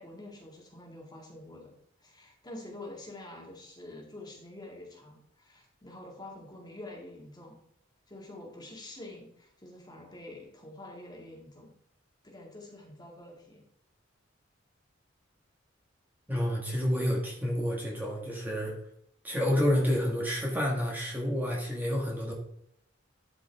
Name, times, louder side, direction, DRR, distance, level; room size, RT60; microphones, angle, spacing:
voice 1, 0.0-1.7 2.0-7.6 8.1-11.7 12.2-13.6, left 1 dB, 20° left, -1 dB, 2.2 m, -47 dB
voice 2, 16.3-18.7 19.2-22.3, equal, 10° right, -3 dB, 1.7 m, -29 dB
11.5 x 5.4 x 3.5 m, 0.73 s
head